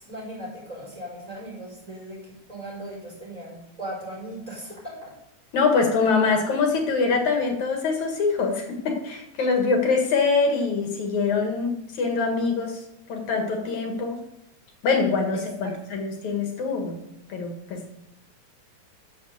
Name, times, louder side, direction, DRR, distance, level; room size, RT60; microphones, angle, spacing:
voice 1, 0.0-5.1 15.6-15.7, right 1 dB, 10° right, -5 dB, 5.5 m, -38 dB
voice 2, 5.5-12.8 13.1-14.2 14.8-17.0 17.3-18.0, left 4 dB, 80° left, 2 dB, 3.1 m, -24 dB
10.0 x 7.2 x 7.1 m, 0.81 s
omnidirectional pair, 3.3 m